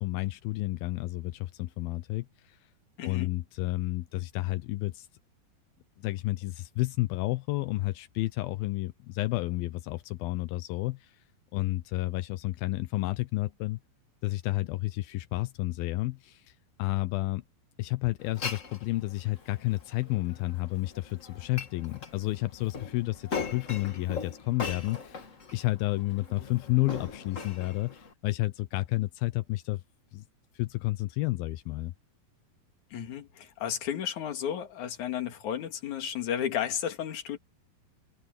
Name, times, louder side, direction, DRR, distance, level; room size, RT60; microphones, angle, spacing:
voice 1, 0.0-2.6 3.0-5.1 6.0-11.2 11.5-13.8 14.2-17.4 17.8-25.3 25.5-29.8 30.1-30.2 30.5-31.9, left 19 dB, 85° left, 2.6 m, -31 dB
voice 2, 3.0-3.3 32.9-37.4, left 9 dB, 60° left, 3.3 m, -33 dB
Glass, 18.2-28.1, left 5 dB, 40° left, 1.1 m, -40 dB
omnidirectional pair, 4.1 m